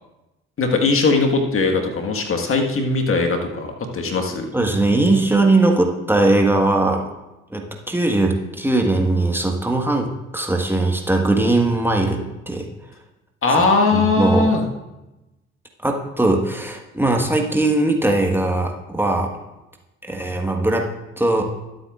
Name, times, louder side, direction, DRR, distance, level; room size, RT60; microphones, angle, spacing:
voice 1, 0.6-4.5 13.4-14.6, left 3 dB, 40° left, 3 dB, 1.7 m, -19 dB
voice 2, 4.5-7.0 7.5-12.7 13.9-14.5 15.8-19.3 20.1-20.9 21.2-21.5, right 2 dB, 5° right, 2 dB, 1.5 m, -19 dB
22.0 x 7.9 x 2.5 m, 1.0 s
figure-of-eight pair, 45°, 34 cm